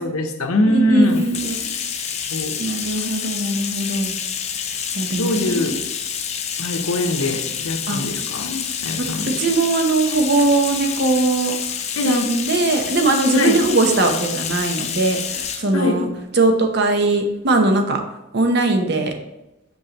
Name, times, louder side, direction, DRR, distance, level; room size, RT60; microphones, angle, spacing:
voice 1, 0.0-1.2 2.3-2.6 5.1-5.8 6.6-9.4 12.0-12.4 13.3-13.6 15.7-16.0, left 1 dB, 80° left, 5 dB, 0.8 m, -22 dB
voice 2, 0.6-1.6 2.6-4.1 4.9-5.4 7.9-8.0 9.4-11.5 12.0-16.1 16.3-18.0 18.3-19.1, right 2 dB, 50° right, 4 dB, 0.7 m, -20 dB
Bathtub (filling or washing), 1.0-15.7, left 7 dB, 30° left, 0.5 m, -28 dB
6.4 x 5.3 x 2.9 m, 0.94 s
head